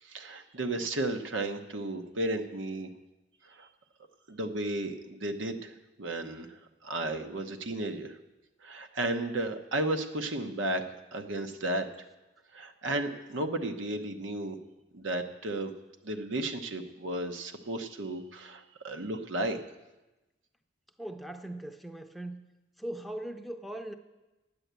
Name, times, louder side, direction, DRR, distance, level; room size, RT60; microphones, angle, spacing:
voice 1, 0.0-2.9 3.4-3.7 4.3-8.2 8.6-10.8 11.1-11.9 12.5-14.6 14.9-15.7 16.0-19.6, right 1 dB, 85° right, 6 dB, 0.9 m, -34 dB
voice 2, 21.0-22.5 22.8-24.0, right 1 dB, ahead, 5 dB, 0.5 m, -39 dB
10.0 x 8.8 x 8.1 m, 1.1 s
head